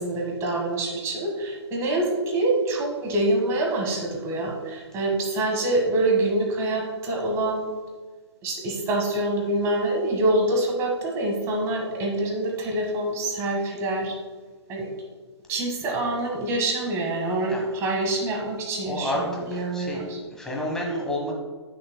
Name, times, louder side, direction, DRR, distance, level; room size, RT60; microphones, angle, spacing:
voice 1, 0.0-7.6 8.4-14.2 14.7-14.9 15.5-20.2, right 2 dB, 20° right, 0 dB, 1.5 m, -26 dB
voice 2, 18.9-19.2 19.5-21.3, left 1 dB, 5° left, -2 dB, 1.4 m, -30 dB
15.5 x 6.5 x 2.2 m, 1.4 s
figure-of-eight pair, 130°, 15 cm